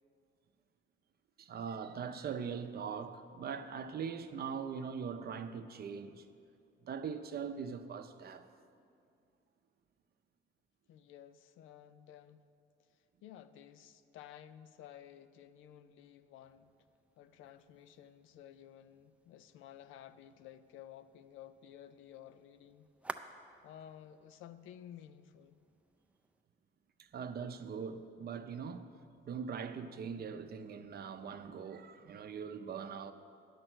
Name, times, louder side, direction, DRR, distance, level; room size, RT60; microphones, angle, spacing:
voice 1, 1.4-6.3 6.8-8.5 27.0-28.9 29.2-33.1, right 6 dB, 50° right, 0.6 m, -41 dB
voice 2, 10.9-12.5 13.2-16.7 17.2-22.9 23.6-25.6, left 10 dB, 85° left, 0.5 m, -54 dB
sound 1, 16.4-26.4, right 2 dB, 5° right, 0.4 m, -54 dB
9.8 x 6.7 x 6.1 m
cardioid pair, 90°, 20 cm